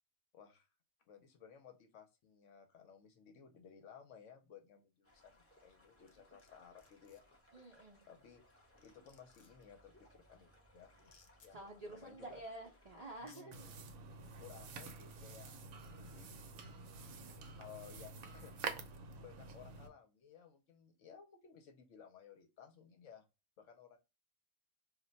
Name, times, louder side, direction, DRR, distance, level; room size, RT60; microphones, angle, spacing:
voice 1, 0.3-0.7 1.1-7.2 8.1-8.4 8.8-11.1 11.4-11.6 11.9-12.4 13.2-13.7 14.4-16.3 17.1-23.3 23.6-24.0, left 7 dB, 65° left, 5 dB, 0.9 m, -58 dB
sound 1, 5.0-13.3, equal, 10° left, 0.7 m, -67 dB
sound 2, 6.1-6.5 6.8-7.2 8.4-8.5 8.8-9.6 11.0-11.5 12.6-12.7 13.1-13.4, left 5 dB, 90° left, 0.3 m, -65 dB
voice 2, 7.5-8.0 11.5-13.7, right 2 dB, 50° right, -3 dB, 0.4 m, -49 dB
sound 3, 13.5-19.9, right 4 dB, 75° right, 1.0 m, -48 dB
2.4 x 2.1 x 3.7 m, 0.27 s
omnidirectional pair, 1.5 m